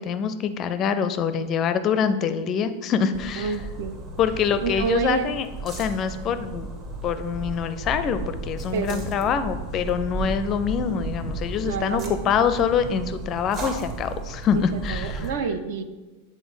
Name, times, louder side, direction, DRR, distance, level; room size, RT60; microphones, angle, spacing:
voice 1, 0.0-3.5 4.2-6.7 7.0-15.3, left 7 dB, 30° left, 11 dB, 0.4 m, -25 dB
sound 1, 3.1-15.3, right 2 dB, 35° right, 1.1 m, -34 dB
voice 2, 3.4-4.0 4.6-5.3 8.7-9.3 11.6-12.2 14.9-15.8, right 5 dB, 50° right, 11 dB, 0.5 m, -28 dB
7.9 x 3.8 x 4.9 m, 1.3 s
figure-of-eight pair, 90°, 0 cm